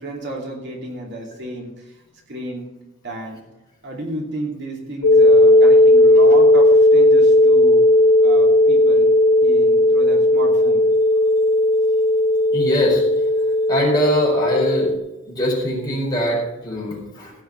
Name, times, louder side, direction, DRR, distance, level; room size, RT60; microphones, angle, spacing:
voice 1, 0.0-2.0 2.3-2.7 3.0-3.4 3.8-7.9 8.2-9.1 9.4-10.9, right 1 dB, 55° right, 0 dB, 2.8 m, -32 dB
sound 1, 5.0-15.0, left 1 dB, 70° left, 1.5 m, -14 dB
voice 2, 12.5-13.0 13.7-14.9 15.3-17.3, left 1 dB, 20° left, -3 dB, 4.5 m, -22 dB
16.0 x 5.8 x 6.9 m, 0.99 s
head